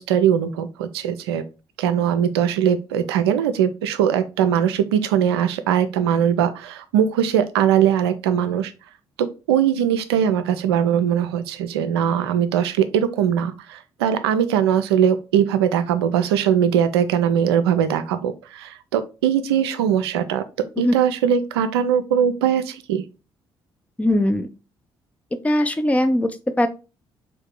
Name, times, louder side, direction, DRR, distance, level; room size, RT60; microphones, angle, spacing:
voice 1, 0.0-1.4 1.8-8.7 9.2-20.4 20.8-23.0, right 9 dB, 80° right, 10 dB, 0.4 m, -20 dB
voice 2, 24.0-24.5 25.4-26.7, left 1 dB, 10° left, 9 dB, 0.5 m, -20 dB
3.9 x 2.7 x 3.6 m, 0.31 s
figure-of-eight pair, 45°, 13 cm